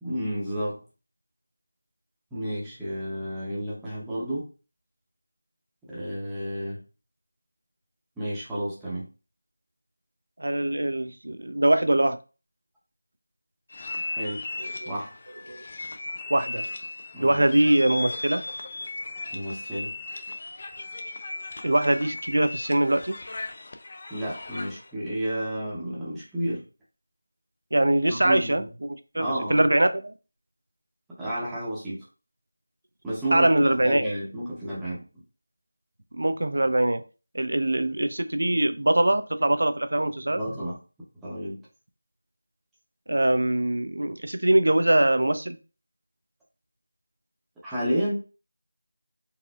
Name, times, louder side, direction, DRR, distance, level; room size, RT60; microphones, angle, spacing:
voice 1, 0.0-0.8 2.3-4.5 5.9-6.8 8.2-9.1 14.1-14.5 14.9-15.1 17.1-17.4 19.3-19.9 24.1-26.6 28.1-28.7 29.2-29.6 31.2-32.0 33.0-35.0 40.3-40.8 41.2-41.6 47.6-48.2, right 1 dB, 5° right, 0.7 m, -31 dB
voice 2, 10.4-12.2 14.8-14.9 15.5-15.6 16.3-16.6 17.2-18.4 21.6-23.2 27.7-28.6 29.1-30.1 33.3-34.1 36.1-37.0 37.3-40.4 43.1-45.6, right 1 dB, 70° right, 0.5 m, -22 dB
sound 1, 13.7-24.9, left 2 dB, 30° left, 0.4 m, -37 dB
4.1 x 2.4 x 2.3 m
figure-of-eight pair, 175°, 0 cm